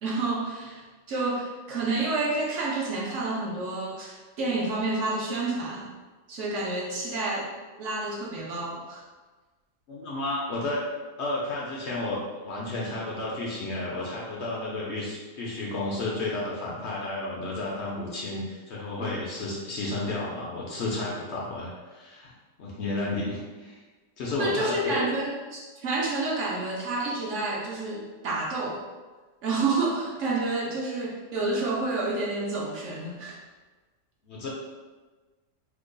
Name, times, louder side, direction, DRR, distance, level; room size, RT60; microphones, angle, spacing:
voice 1, 0.0-5.9 6.3-7.5 7.8-9.0 19.0-19.1 24.4-28.8 29.4-33.4, right 3 dB, 65° right, -3 dB, 0.7 m, -29 dB
voice 2, 9.9-10.9 11.2-22.3 22.6-23.8 24.2-25.1 34.2-34.5, left 2 dB, 75° left, -4 dB, 0.6 m, -32 dB
2.9 x 2.2 x 3.7 m, 1.3 s
omnidirectional pair, 1.8 m